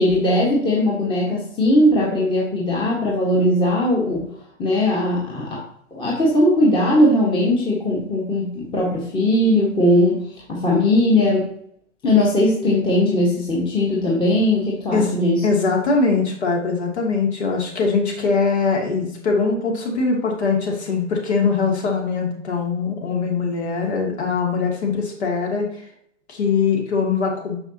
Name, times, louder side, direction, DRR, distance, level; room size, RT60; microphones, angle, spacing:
voice 1, 0.0-4.3 4.6-5.6 5.9-11.5 12.0-15.4, left 1 dB, 15° left, -3 dB, 1.4 m, -19 dB
voice 2, 15.4-25.7 26.3-27.6, left 4 dB, 60° left, 0 dB, 2.7 m, -22 dB
9.7 x 6.1 x 2.8 m, 0.69 s
figure-of-eight pair, 115°, 38 cm